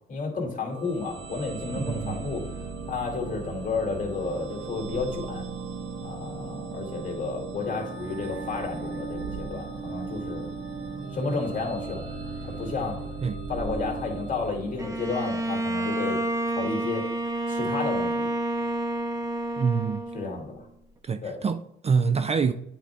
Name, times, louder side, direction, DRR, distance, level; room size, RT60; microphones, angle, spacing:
voice 1, 0.1-2.5 2.9-5.4 6.0-10.5 11.1-13.0 13.5-16.2 16.5-17.0 17.5-18.3 20.1-20.7 21.2-21.3, left 4 dB, 40° left, 2.2 m, -32 dB
sound 1, 0.7-15.4, right 4 dB, 75° right, 1.3 m, -37 dB
voice 2, 1.8-2.2 13.2-13.4 19.6-20.0 21.0-22.5, right 5 dB, 30° right, 0.4 m, -26 dB
Bowed string instrument, 14.8-20.5, right 1 dB, 15° right, 0.9 m, -29 dB
8.9 x 4.7 x 3.5 m
cardioid pair, 90°, 20 cm